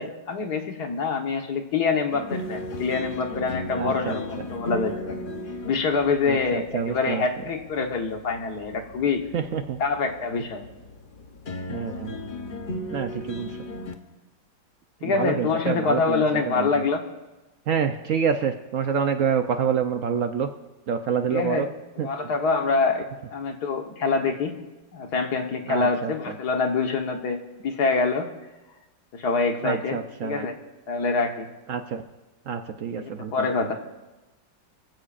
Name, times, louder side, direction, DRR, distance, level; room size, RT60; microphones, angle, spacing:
voice 1, 0.0-5.2 5.7-9.2 9.8-10.7 15.0-17.0 21.3-21.7 22.0-24.5 24.9-28.3 29.1-30.5 30.9-31.5 33.0-33.7, left 4 dB, 60° left, 4 dB, 1.7 m, -25 dB
sound 1, 2.1-13.9, left 1 dB, 45° left, 0.7 m, -37 dB
voice 2, 3.8-4.2 6.3-7.2 9.3-9.8 11.7-12.3 12.9-13.5 15.0-16.2 16.5-16.7 17.7-20.5 20.9-21.7 22.0-22.1 25.7-26.1 29.6-30.5 31.7-32.0 32.5-33.4, right 7 dB, 65° right, 7 dB, 0.8 m, -27 dB
24.0 x 15.5 x 2.5 m, 1.1 s
omnidirectional pair, 2.0 m